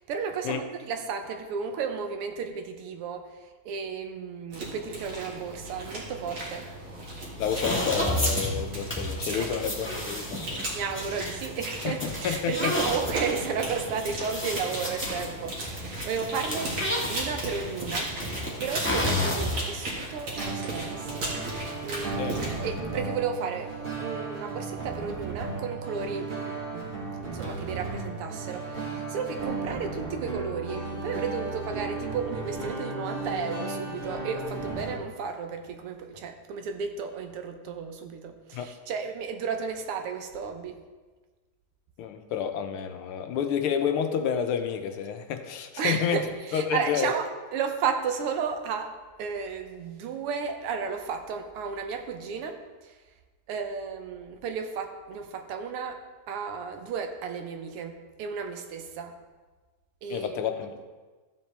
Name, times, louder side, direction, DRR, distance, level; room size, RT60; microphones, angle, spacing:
voice 1, 0.1-3.3 3.7-6.7 9.4-9.5 10.7-16.7 17.1-21.4 21.8-22.4 22.6-26.3 26.7-26.9 27.2-40.8 45.8-52.6 53.5-56.0 56.3-59.1 60.0-60.3, right 6 dB, 85° right, 6 dB, 1.8 m, -33 dB
sound 1, 4.5-22.7, right 1 dB, 65° right, 2.7 m, -36 dB
voice 2, 7.4-10.6 11.8-12.7 22.2-22.4 38.5-38.7 42.0-47.1 60.1-60.7, left 7 dB, 75° left, 7 dB, 1.6 m, -30 dB
sound 2, 7.4-19.8, left 1 dB, 5° left, 1.3 m, -32 dB
sound 3, 20.3-34.9, right 3 dB, 30° right, 1.5 m, -35 dB
14.0 x 7.4 x 3.3 m, 1.3 s
omnidirectional pair, 2.4 m